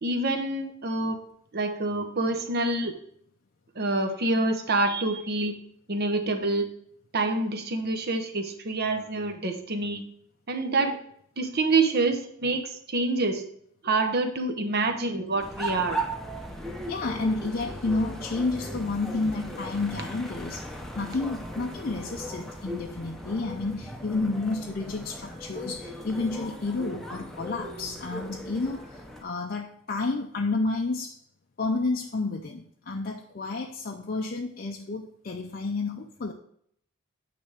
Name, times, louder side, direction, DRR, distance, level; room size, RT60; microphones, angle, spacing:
voice 1, 0.0-1.2 1.5-2.9 3.8-5.6 5.9-6.7 7.1-10.0 10.5-11.0 11.4-13.5 13.8-16.0, right 2 dB, 45° right, 6 dB, 0.8 m, -27 dB
sound 1, 15.4-29.2, right 1 dB, ahead, 0.7 m, -37 dB
voice 2, 16.9-31.2 31.6-36.3, left 3 dB, 40° left, 1 dB, 0.5 m, -30 dB
9.0 x 3.4 x 4.8 m, 0.67 s
head